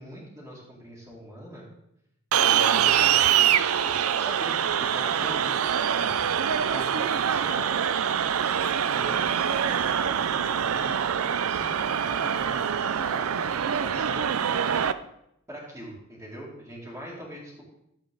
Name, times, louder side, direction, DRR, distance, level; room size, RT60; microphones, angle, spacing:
voice 1, 0.0-1.7 2.4-3.2 3.8-5.6 6.1-6.2 6.5-7.7 8.9-11.0 11.5-14.3 15.5-17.6, equal, 10° right, -10 dB, 2.8 m, -42 dB
sound 1, 2.3-14.9, right 8 dB, 80° right, 0.5 m, -24 dB
12.5 x 8.4 x 3.9 m, 0.79 s
head